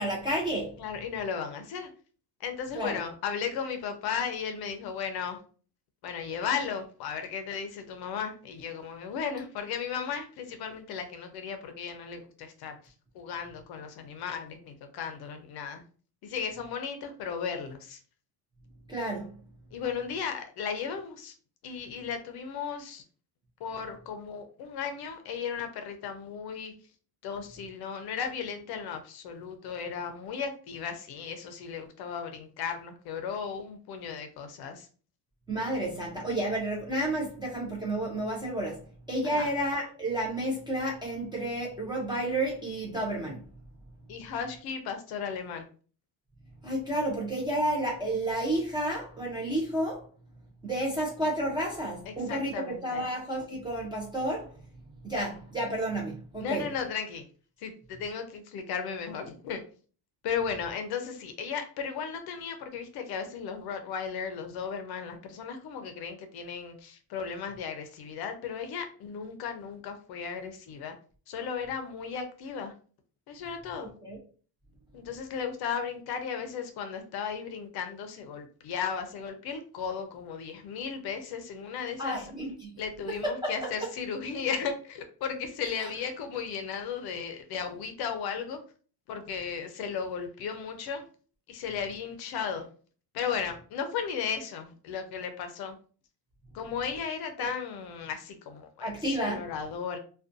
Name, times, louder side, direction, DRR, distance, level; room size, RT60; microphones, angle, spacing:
voice 1, 0.0-0.7 2.7-3.0 18.9-19.3 35.5-38.8 39.1-43.4 46.6-50.1 50.6-54.6 55.0-56.6 74.0-74.2 82.0-82.7 83.1-83.5 85.8-85.9 97.4-97.5 98.8-99.4, right 1 dB, 10° right, 0.4 m, -31 dB
voice 2, 0.8-1.9 2.4-5.4 6.0-15.8 16.2-18.0 19.7-21.3 21.6-23.0 23.6-26.7 27.2-34.9 39.2-39.5 44.1-45.6 52.1-53.0 56.4-57.3 57.6-59.6 60.2-71.0 71.3-72.7 73.3-73.9 74.9-82.3 82.8-88.6 89.1-91.0 91.5-92.7 93.1-95.8 96.5-100.0, left 6 dB, 55° left, 0.5 m, -35 dB
2.5 x 2.2 x 2.5 m
cardioid pair, 155°, 48 cm